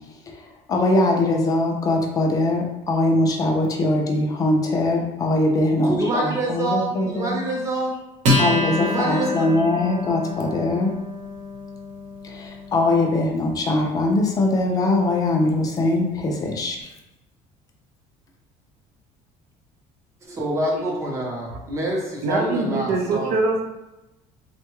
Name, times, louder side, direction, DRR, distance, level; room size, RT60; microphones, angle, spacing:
voice 1, 0.3-7.4 8.4-10.9 12.2-16.8, left 2 dB, 25° left, 1 dB, 0.4 m, -22 dB
voice 2, 5.8-8.1 8.8-9.6 20.3-23.4, right 1 dB, 20° right, -1 dB, 0.6 m, -26 dB
Acoustic guitar, 8.2-15.1, left 1 dB, 60° right, 1.0 m, -28 dB
voice 3, 22.2-23.6, right 3 dB, 85° right, 3 dB, 0.6 m, -23 dB
3.5 x 2.2 x 3.0 m, 0.99 s
cardioid pair, 170°, 14 cm